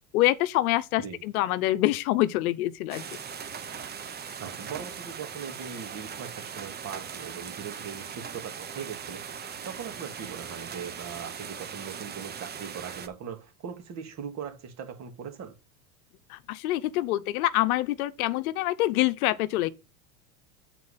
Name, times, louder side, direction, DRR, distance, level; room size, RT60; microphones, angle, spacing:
voice 1, 0.1-3.0 16.3-19.7, left 16 dB, 80° left, 0.8 m, -26 dB
sound 1, 2.9-13.1, right 7 dB, 25° right, 0.9 m, -40 dB
voice 2, 4.4-15.5, right 7 dB, 40° right, 2.3 m, -40 dB
8.4 x 4.5 x 5.6 m
supercardioid pair, 125°, 42 cm